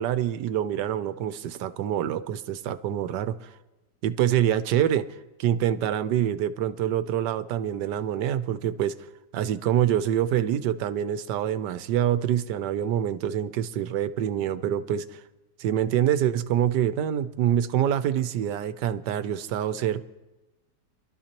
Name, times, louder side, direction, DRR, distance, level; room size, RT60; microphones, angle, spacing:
voice 1, 0.0-3.5 4.0-5.0 5.4-8.9 9.3-15.2 15.6-20.0, right 10 dB, 75° right, 12 dB, 1.2 m, -26 dB
25.0 x 12.0 x 2.9 m, 1.1 s
omnidirectional pair, 1.9 m